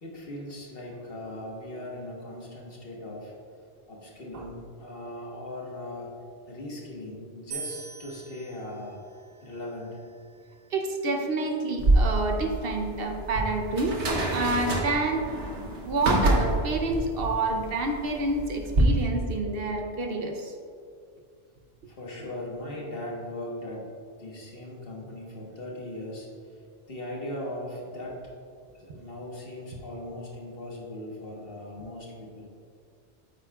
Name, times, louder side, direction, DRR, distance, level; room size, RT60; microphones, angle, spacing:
voice 1, 0.0-3.3 3.9-6.1 6.5-9.0 9.4-10.0 21.9-23.9 24.2-26.3 26.9-28.2 28.7-32.5, left 1 dB, 60° left, -2 dB, 1.5 m, -39 dB
sound 1, 7.5-10.7, right 5 dB, 40° right, 1.2 m, -43 dB
voice 2, 10.7-14.0 14.3-15.2 15.8-20.5, right 2 dB, 60° right, 3 dB, 0.9 m, -28 dB
sound 2, 11.8-18.8, right 2 dB, 85° right, 1.4 m, -27 dB
8.9 x 8.0 x 2.3 m, 2.3 s
omnidirectional pair, 1.1 m